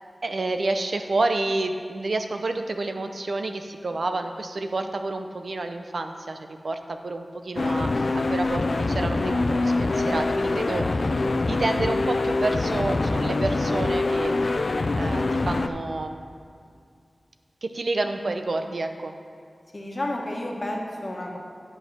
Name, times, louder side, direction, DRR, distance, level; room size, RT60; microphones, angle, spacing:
voice 1, 0.2-11.1 11.5-14.4 15.0-16.2 17.6-19.1, right 2 dB, 65° right, 6 dB, 0.6 m, -29 dB
sound 1, 7.6-15.7, left 2 dB, 55° left, 0.4 m, -24 dB
voice 2, 19.7-21.4, left 1 dB, 35° left, -1 dB, 1.3 m, -31 dB
9.6 x 5.5 x 6.1 m, 2.3 s
wide cardioid pair, 90°, 0 cm